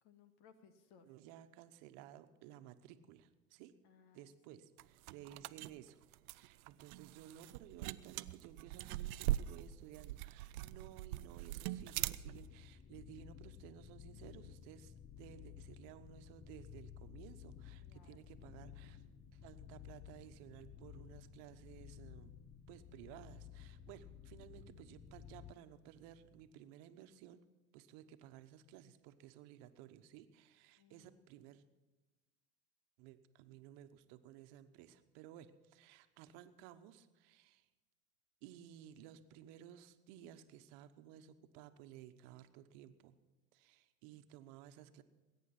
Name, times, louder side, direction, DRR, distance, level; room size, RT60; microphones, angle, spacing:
voice 1, 0.0-1.1 3.8-4.6 14.1-14.6 17.8-18.3 30.8-31.2, left 6 dB, 60° left, 9 dB, 2.0 m, -65 dB
voice 2, 1.1-3.7 4.1-6.0 6.3-19.0 19.3-22.4 22.7-27.4 27.7-31.6 33.0-37.7 38.4-43.2 43.5-45.0, right 11 dB, 65° right, 10 dB, 1.2 m, -56 dB
sound 1, 4.8-12.5, right 15 dB, 80° right, 0.6 m, -42 dB
sound 2, 11.6-25.5, left 10 dB, 25° left, 0.6 m, -55 dB
sound 3, 15.8-26.4, right 5 dB, 25° right, 2.5 m, -67 dB
20.0 x 9.4 x 6.0 m, 1.2 s
hypercardioid pair, 90°, 43 cm